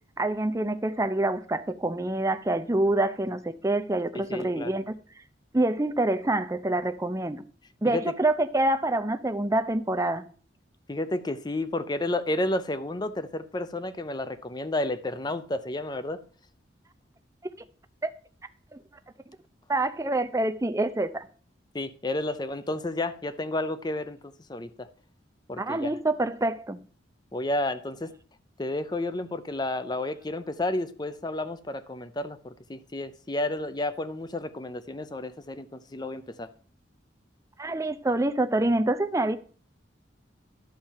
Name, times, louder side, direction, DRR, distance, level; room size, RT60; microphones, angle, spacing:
voice 1, 0.2-4.8 5.5-7.4 7.8-10.3 18.0-18.1 19.7-21.3 25.6-26.8 37.6-39.4, right 2 dB, 15° right, 0.6 m, -26 dB
voice 2, 4.1-4.7 7.9-8.0 10.9-16.2 21.7-24.9 25.5-25.9 27.3-28.1 28.6-36.5, left 2 dB, 25° left, 0.6 m, -31 dB
11.5 x 4.3 x 7.3 m
head